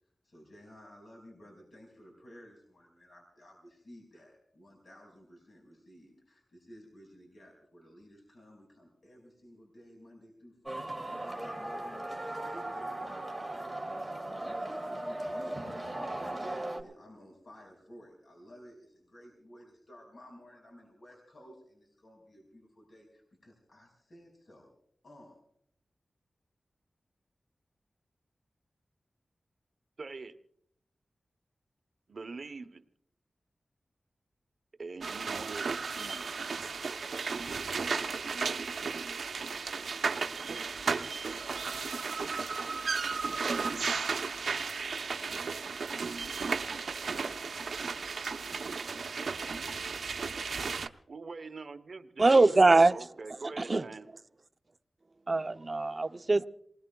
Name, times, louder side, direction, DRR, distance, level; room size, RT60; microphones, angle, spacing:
voice 1, 0.2-15.6 15.9-24.7 25.0-25.4, equal, 60° left, 0 dB, 5.0 m, -54 dB
sound 1, 10.7-16.8, right 1 dB, 10° right, 2.5 m, -37 dB
voice 2, 30.0-30.4 32.1-32.8 34.8-36.4 51.1-54.1, right 4 dB, 65° right, 10 dB, 0.9 m, -44 dB
sound 2, 35.0-50.9, right 5 dB, 90° right, 0.7 m, -34 dB
voice 3, 52.2-52.9 53.6-53.9 55.3-56.5, right 3 dB, 35° right, 9 dB, 0.6 m, -22 dB
28.0 x 20.0 x 2.3 m, 0.70 s
wide cardioid pair, 90°, 0 cm